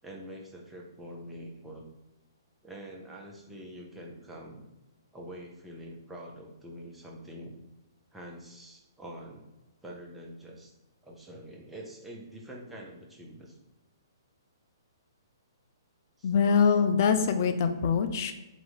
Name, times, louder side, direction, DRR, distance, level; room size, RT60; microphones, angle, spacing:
voice 1, 0.0-1.8 2.6-4.7 5.1-7.6 8.1-9.5 9.8-10.7 11.0-13.6 16.2-16.3, equal, 5° right, -1 dB, 0.6 m, -45 dB
voice 2, 16.2-18.3, left 6 dB, 45° left, 9 dB, 0.4 m, -24 dB
2.8 x 2.6 x 4.0 m, 1.0 s
figure-of-eight pair, 120°, 2 cm